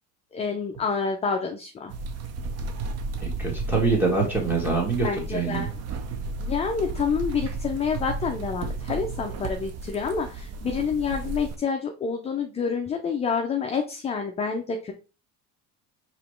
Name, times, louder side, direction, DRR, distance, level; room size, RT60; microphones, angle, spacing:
voice 1, 0.3-1.9 5.0-5.7 6.4-14.9, left 5 dB, 15° left, 3 dB, 0.4 m, -28 dB
sound 1, 1.9-11.6, right 3 dB, 40° right, 0.6 m, -33 dB
voice 2, 3.2-5.7, right 4 dB, 5° right, -1 dB, 1.6 m, -25 dB
4.9 x 3.0 x 3.0 m, 0.33 s
cardioid pair, 125°, 39 cm